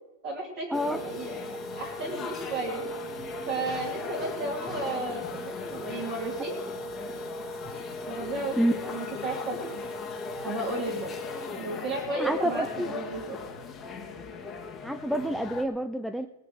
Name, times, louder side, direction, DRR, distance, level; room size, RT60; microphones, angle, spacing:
voice 1, 0.2-2.8 3.5-6.6 8.1-9.8 10.4-11.1 11.6-13.4, right 2 dB, 35° right, -1 dB, 2.7 m, -34 dB
sound 1, 0.7-15.6, left 3 dB, 15° left, 1.5 m, -37 dB
voice 2, 12.2-12.9 14.8-16.3, equal, ahead, 9 dB, 0.4 m, -28 dB
18.5 x 6.6 x 7.9 m, 1.1 s
supercardioid pair, 165°, 0 cm